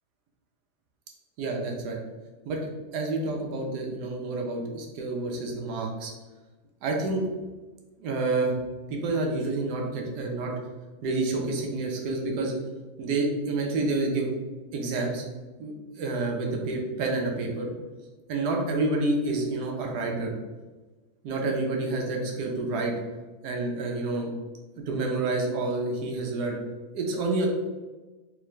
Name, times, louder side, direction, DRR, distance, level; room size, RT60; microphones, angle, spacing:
voice 1, 1.4-2.0 2.4-6.1 6.8-7.2 8.0-8.5 8.9-10.5 11.0-12.5 13.0-14.3 14.7-15.2 15.6-17.7 18.3-20.3 21.2-22.9 23.4-24.3 24.9-26.6 26.9-27.5, right 2 dB, 85° right, 0 dB, 1.3 m, -28 dB
3.6 x 3.2 x 3.1 m, 1.2 s
omnidirectional pair, 1.7 m